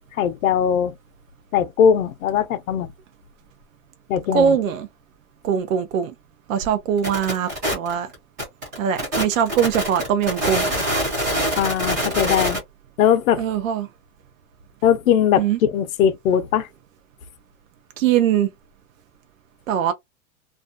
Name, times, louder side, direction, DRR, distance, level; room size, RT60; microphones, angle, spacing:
voice 1, 0.2-0.9 1.5-2.9 4.1-4.6 11.6-12.6 13.0-13.4 14.8-16.7, left 8 dB, 70° left, 0.6 m, -20 dB
voice 2, 4.3-4.9 5.4-6.1 6.5-8.1 8.8-10.7 13.4-13.9 15.4-15.6 18.0-18.5 19.7-19.9, right 8 dB, 65° right, 0.6 m, -21 dB
sound 1, 7.0-12.6, equal, 15° right, 0.3 m, -24 dB
2.5 x 2.2 x 2.5 m
hypercardioid pair, 155°, 43 cm